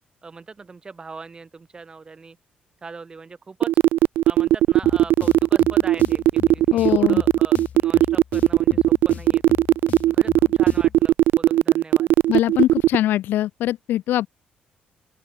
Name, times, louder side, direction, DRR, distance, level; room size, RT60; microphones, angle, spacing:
voice 1, 0.2-2.4 2.8-3.7 4.2-9.6 10.1-12.1, right 4 dB, 25° right, 1.6 m, -40 dB
sound 1, 3.6-13.0, right 14 dB, 80° right, 0.3 m, -17 dB
sound 2, 4.8-11.0, left 8 dB, 50° left, 2.6 m, -39 dB
voice 2, 6.7-7.2 12.3-14.3, left 13 dB, 80° left, 0.6 m, -22 dB
open air
cardioid pair, 125°, 3 cm